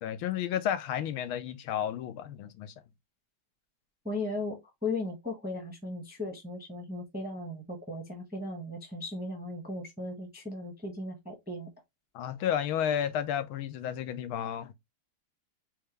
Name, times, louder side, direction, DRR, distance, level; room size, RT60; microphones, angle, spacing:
voice 1, 0.0-2.7 12.1-14.7, left 9 dB, 75° left, 1.4 m, -32 dB
voice 2, 4.0-11.7, left 2 dB, 10° right, 0.7 m, -37 dB
4.4 x 3.7 x 3.1 m
omnidirectional pair, 2.3 m